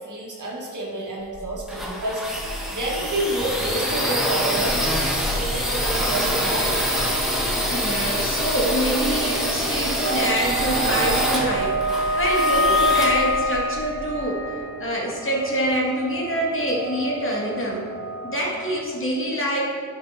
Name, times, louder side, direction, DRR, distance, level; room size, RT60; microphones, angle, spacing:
voice 1, 0.0-2.2 2.7-4.9 5.3-6.8, right 1 dB, 60° right, -3 dB, 2.0 m, -29 dB
sound 1, 1.3-14.0, equal, ahead, 1.6 m, -25 dB
voice 2, 7.7-14.4 14.8-17.9 18.2-19.6, equal, 35° left, -4 dB, 2.2 m, -25 dB
sound 2, 10.1-18.8, equal, 80° right, 0.8 m, -27 dB
10.5 x 5.8 x 4.3 m, 2.1 s
cardioid pair, 75°, 35 cm